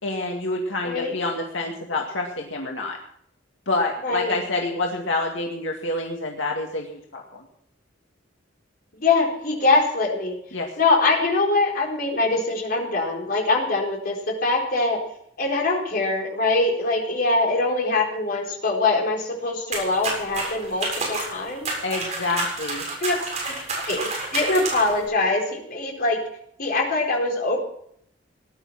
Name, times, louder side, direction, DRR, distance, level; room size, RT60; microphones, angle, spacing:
voice 1, 0.0-3.0 3.7-7.4 10.5-10.7 21.8-22.9, left 2 dB, 85° left, 0 dB, 2.2 m, -27 dB
voice 2, 0.8-1.2 4.0-4.3 8.9-10.4 10.8-15.0 15.4-21.7 23.0-23.6 23.9-26.2 26.6-27.6, left 3 dB, 50° left, -1 dB, 4.5 m, -23 dB
sound 1, 19.7-25.0, right 2 dB, 40° right, 7.3 m, -30 dB
18.5 x 11.0 x 6.0 m, 0.69 s
head